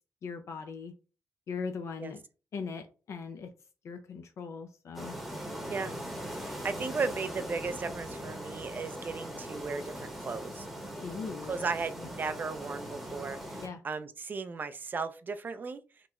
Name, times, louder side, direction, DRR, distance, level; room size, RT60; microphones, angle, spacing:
voice 1, 0.2-0.9 1.5-2.2 2.5-3.5 3.8-5.2 11.0-11.7 12.0-12.1 13.6-13.8, left 5 dB, 60° left, 0.4 m, -39 dB
sound 1, 4.9-13.7, equal, ahead, 0.8 m, -40 dB
voice 2, 6.4-10.7 11.5-15.8, right 4 dB, 35° right, 0.4 m, -36 dB
2.9 x 2.0 x 3.5 m
cardioid pair, 95°, 6 cm